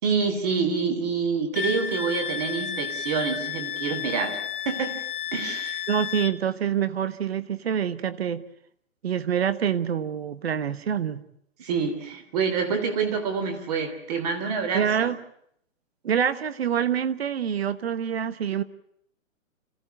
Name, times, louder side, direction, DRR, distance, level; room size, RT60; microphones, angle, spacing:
voice 1, 0.0-4.4 4.6-5.0 5.3-5.8 11.6-15.1, right 5 dB, 30° right, 8 dB, 3.1 m, -27 dB
Wind instrument woodwind instrument, 1.5-6.3, left 9 dB, 40° left, 1.4 m, -32 dB
voice 2, 5.9-8.4 9.0-11.3 14.7-15.2 16.0-18.6, right 8 dB, 50° right, 14 dB, 1.3 m, -26 dB
27.0 x 16.0 x 9.1 m, 0.71 s
hypercardioid pair, 170°, 40 cm